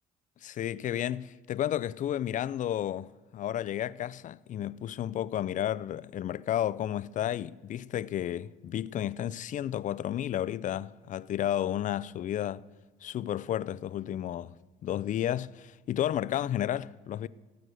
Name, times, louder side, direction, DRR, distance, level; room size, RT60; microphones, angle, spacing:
voice 1, 0.4-12.6 13.0-14.5 14.8-17.3, left 11 dB, 50° left, 0.5 m, -32 dB
14.5 x 9.2 x 6.4 m
cardioid pair, 110°, 17 cm